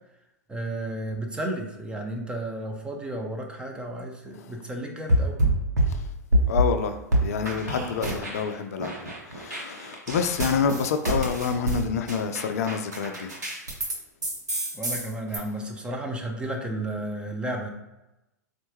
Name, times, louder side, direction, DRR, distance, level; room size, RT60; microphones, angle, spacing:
voice 1, 0.5-5.4 14.7-17.7, right 1 dB, 10° right, 1 dB, 0.7 m, -33 dB
sound 1, 5.1-6.7 7.1-8.5 8.8-14.0 14.2-15.4, right 1 dB, 80° right, 1.0 m, -26 dB
voice 2, 6.5-7.0 7.2-13.3, left 6 dB, 60° left, 8 dB, 0.4 m, -27 dB
4.3 x 2.4 x 3.0 m, 0.96 s
figure-of-eight pair, 100°, 9 cm